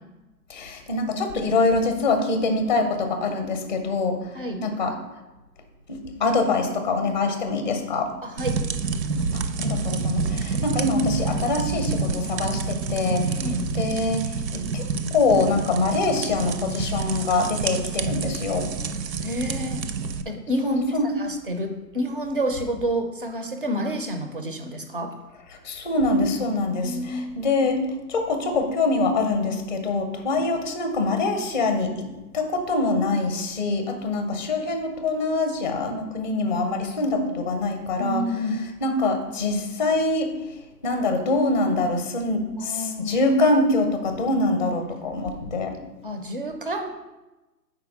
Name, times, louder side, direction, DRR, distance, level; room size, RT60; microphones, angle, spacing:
voice 1, 0.5-4.3 4.6-4.9 5.9-8.1 9.3-13.4 13.7-18.7 20.6-21.1 25.6-27.8 28.1-32.1 32.3-38.2 38.8-40.3 40.8-45.8, left 3 dB, 30° left, 6 dB, 0.5 m, -24 dB
voice 2, 8.2-8.6 13.4-13.7 19.2-19.8 20.3-25.1 26.8-27.4 38.0-38.6 42.6-43.3 46.0-46.9, equal, 35° right, 6 dB, 0.4 m, -29 dB
sound 1, 8.4-20.2, right 4 dB, 85° right, 0.7 m, -28 dB
4.9 x 4.5 x 5.8 m, 1.1 s
hypercardioid pair, 155°, 50 cm